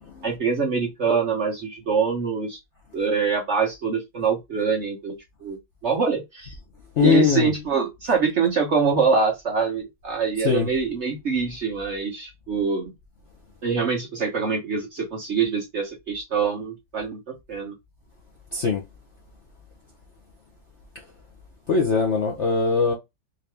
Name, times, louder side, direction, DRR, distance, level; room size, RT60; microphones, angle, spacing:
voice 1, 0.2-2.6 2.9-6.6 7.0-12.9 13.6-17.7, right 5 dB, 50° right, 0.9 m, -24 dB
voice 2, 7.0-7.5 10.4-10.7 18.5-18.8 21.7-22.9, left 5 dB, 60° left, 0.7 m, -20 dB
3.8 x 2.8 x 3.3 m
omnidirectional pair, 2.0 m